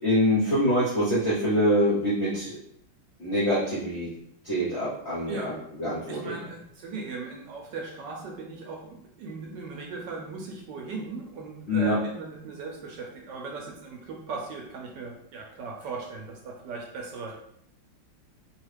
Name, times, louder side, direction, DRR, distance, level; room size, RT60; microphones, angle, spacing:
voice 1, 0.0-2.6 3.2-4.1 4.4-6.3 11.7-12.0, equal, 60° left, -8 dB, 0.7 m, -25 dB
voice 2, 6.1-17.3, right 4 dB, 75° right, 0 dB, 1.1 m, -38 dB
3.0 x 2.4 x 3.2 m, 0.74 s
omnidirectional pair, 2.1 m